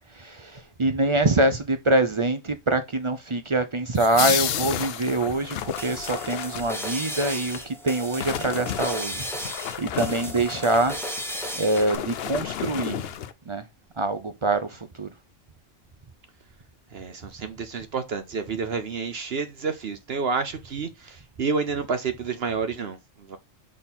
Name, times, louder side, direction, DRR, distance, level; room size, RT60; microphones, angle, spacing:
voice 1, 0.2-9.2 9.8-11.0 11.5-13.0 13.5-13.6 14.0-15.1, right 2 dB, 40° right, 0.4 m, -24 dB
sound 1, 3.9-5.5, left 11 dB, 80° left, 1.0 m, -28 dB
sound 2, 4.4-7.6 8.0-13.3, left 9 dB, 60° left, 0.7 m, -34 dB
sound 3, 5.5-11.9, equal, ahead, 1.0 m, -35 dB
voice 2, 16.9-23.4, right 5 dB, 55° right, 0.9 m, -29 dB
6.2 x 3.7 x 4.2 m
omnidirectional pair, 1.3 m